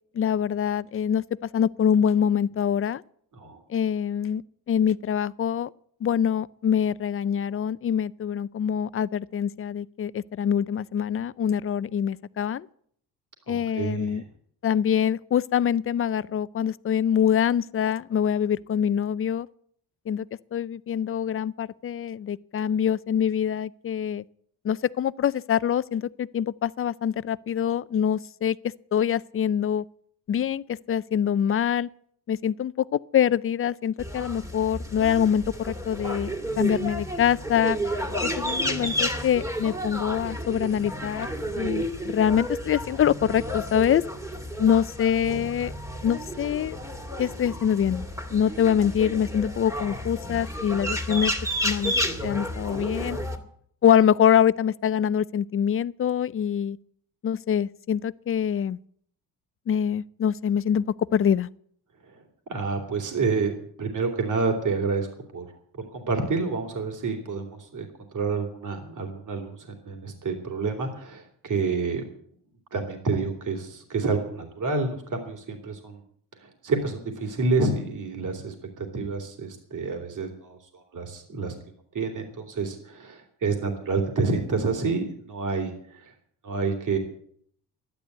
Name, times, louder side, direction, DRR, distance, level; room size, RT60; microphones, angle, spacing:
voice 1, 0.1-1.2 1.5-3.0 3.7-4.4 4.7-5.7 6.0-12.7 13.5-14.2 14.6-19.5 20.1-20.3 20.5-24.2 24.6-28.6 28.9-29.8 30.3-31.9 32.3-37.8 38.2-41.3 41.6-44.0 44.6-45.7 46.0-46.8 47.2-48.0 48.3-51.3 51.6-51.9 52.2-53.2 53.8-56.8 57.2-58.8 59.7-60.8 61.1-61.5, left 9 dB, 35° left, 0.5 m, -24 dB
voice 2, 13.5-14.2 62.1-63.5 63.8-65.1 65.3-65.5 65.9-69.6 69.8-72.0 72.7-76.0 76.4-81.5 81.9-86.1 86.4-87.0, right 4 dB, 50° right, 3.1 m, -28 dB
sound 1, 34.0-53.4, equal, 10° right, 2.4 m, -31 dB
12.0 x 10.5 x 8.2 m
cardioid pair, 100°, 40 cm